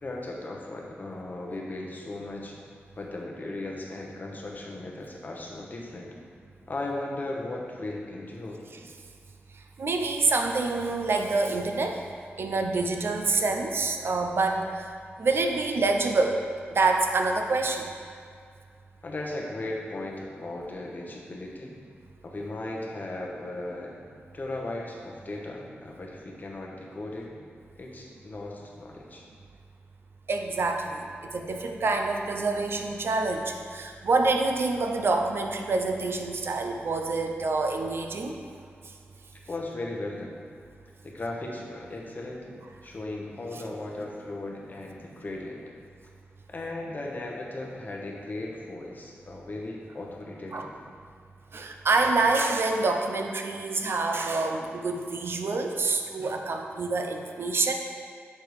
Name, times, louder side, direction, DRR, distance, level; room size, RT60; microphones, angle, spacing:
voice 1, 0.0-2.5 2.9-6.1 6.7-8.6 19.0-21.8 22.2-23.9 24.3-27.3 27.8-29.2 39.3-40.3 41.0-42.5 42.8-45.6 46.5-50.7, left 2 dB, 40° left, -1 dB, 0.9 m, -37 dB
voice 2, 9.8-12.0 12.4-14.9 15.2-16.4 16.7-17.9 30.3-38.4 50.5-50.7 51.5-57.7, right 3 dB, 60° right, 3 dB, 0.5 m, -26 dB
6.6 x 3.5 x 4.7 m, 2.2 s
wide cardioid pair, 100°, 4 cm